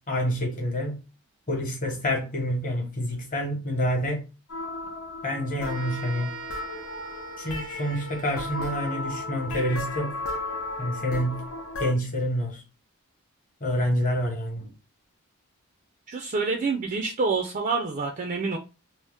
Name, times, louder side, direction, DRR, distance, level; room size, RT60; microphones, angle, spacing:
voice 1, 0.1-1.0 1.5-4.2 5.2-6.4 7.4-10.2 10.8-11.4 11.8-12.6 13.6-14.7, equal, 35° left, 1.0 m, -27 dB
sound 1, 4.5-11.9, left 2 dB, 75° left, 0.6 m, -35 dB
sound 2, 5.6-9.3, right 4 dB, 85° right, 0.6 m, -42 dB
voice 2, 16.1-18.6, right 4 dB, 40° right, 0.4 m, -27 dB
2.7 x 2.0 x 3.3 m
head